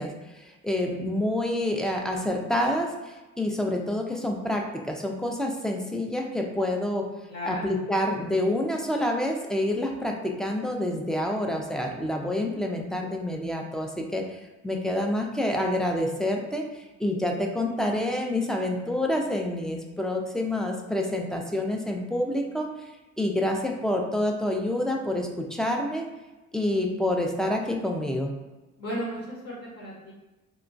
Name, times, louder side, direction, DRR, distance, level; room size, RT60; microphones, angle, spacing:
voice 1, 0.0-7.1 7.5-14.2 14.6-22.7 23.2-26.0 26.5-28.3, left 1 dB, ahead, 1 dB, 0.3 m, -28 dB
voice 2, 7.3-7.7 28.8-30.1, equal, 50° left, -6 dB, 1.0 m, -34 dB
2.9 x 2.2 x 2.5 m, 1.1 s
cardioid pair, 90°, 30 cm